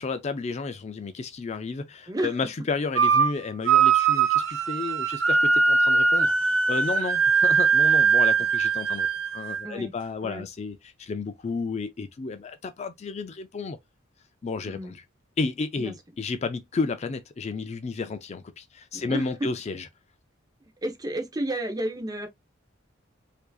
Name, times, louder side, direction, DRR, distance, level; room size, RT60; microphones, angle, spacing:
voice 1, 0.0-9.1 9.3-13.8 14.4-15.0 15.4-19.9, left 4 dB, 35° left, 0.4 m, -32 dB
voice 2, 2.1-2.4 9.6-9.9 10.2-10.5 14.7-14.9 15.7-15.9 18.9-19.5 20.6-22.3, right 1 dB, 20° right, 0.8 m, -31 dB
sound 1, 3.0-3.3 3.7-9.7, right 5 dB, 85° right, 0.7 m, -21 dB
4.7 x 2.6 x 2.3 m
head